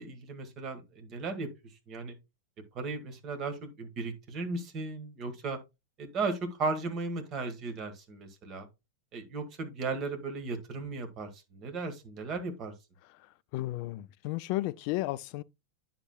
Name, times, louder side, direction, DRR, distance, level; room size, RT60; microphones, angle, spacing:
voice 1, 0.0-1.5 1.9-2.2 2.7-5.6 6.0-8.7 9.1-12.7, right 3 dB, 30° right, 1.6 m, -36 dB
voice 2, 13.5-15.4, left 17 dB, 45° left, 0.4 m, -33 dB
9.7 x 5.8 x 2.3 m
figure-of-eight pair, 90°, 0 cm